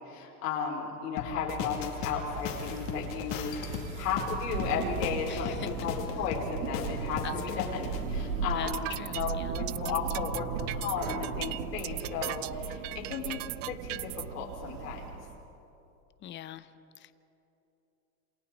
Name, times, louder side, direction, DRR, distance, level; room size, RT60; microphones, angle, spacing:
voice 1, 0.0-8.9 9.1-13.4 13.7-15.0, left 6 dB, 90° left, -1 dB, 5.1 m, -34 dB
sound 1, 1.2-8.0, left 5 dB, 55° left, 2.7 m, -37 dB
Thunder, 1.8-15.4, right 6 dB, 70° right, 2.0 m, -38 dB
voice 2, 5.3-5.7 7.2-7.7 8.5-8.7 9.0-9.6 16.2-16.7 17.0-17.1, left 12 dB, 25° left, 13 dB, 0.7 m, -42 dB
sound 2, 8.5-14.2, right 20 dB, 55° right, 0.5 m, -38 dB
28.0 x 27.0 x 4.1 m, 3.0 s
supercardioid pair, 135°, 45 cm